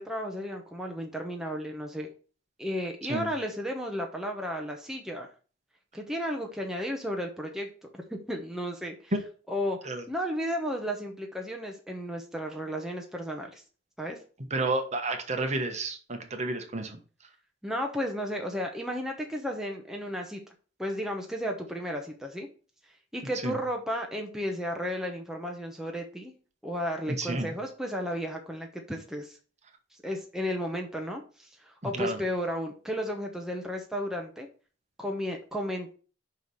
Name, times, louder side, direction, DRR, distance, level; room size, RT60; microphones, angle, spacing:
voice 1, 0.0-2.1 2.6-5.3 5.9-9.1 9.5-13.6 14.0-14.2 17.6-20.4 20.8-22.5 23.1-26.3 26.6-29.4 30.0-34.5 35.0-35.9, equal, 5° right, 1 dB, 0.9 m, -33 dB
voice 2, 14.5-17.0 23.4-23.6 27.1-27.5 31.8-32.2, right 2 dB, 35° right, 5 dB, 1.2 m, -31 dB
5.5 x 4.9 x 6.3 m, 0.38 s
head